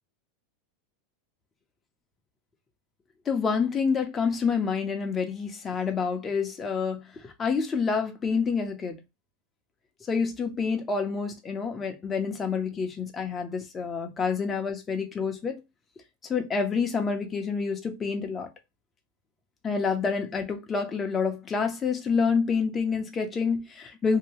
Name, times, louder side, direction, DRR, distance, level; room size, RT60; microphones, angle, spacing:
voice 1, 3.3-9.0 10.1-15.5 16.3-18.5 19.6-24.2, left 5 dB, 20° left, 0.7 m, -28 dB
2.8 x 2.7 x 3.0 m
supercardioid pair, 145°, 0 cm